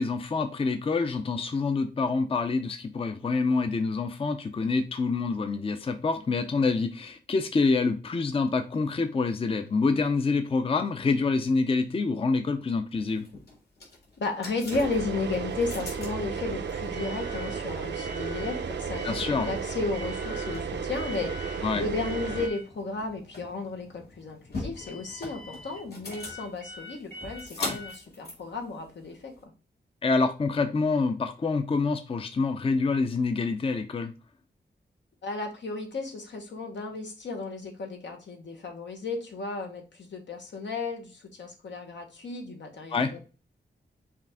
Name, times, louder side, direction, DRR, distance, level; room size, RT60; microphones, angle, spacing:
voice 1, 0.0-13.2 19.0-19.5 21.6-21.8 27.6-27.8 30.0-34.1 42.9-43.1, left 4 dB, 30° left, 0.4 m, -26 dB
sound 1, 13.0-29.4, left 2 dB, 60° left, 2.0 m, -42 dB
voice 2, 14.2-29.5 35.2-43.3, left 3 dB, 80° left, 1.1 m, -34 dB
sound 2, 14.7-22.5, right 6 dB, 75° right, 0.6 m, -33 dB
5.7 x 2.5 x 3.4 m
wide cardioid pair, 105°, 18 cm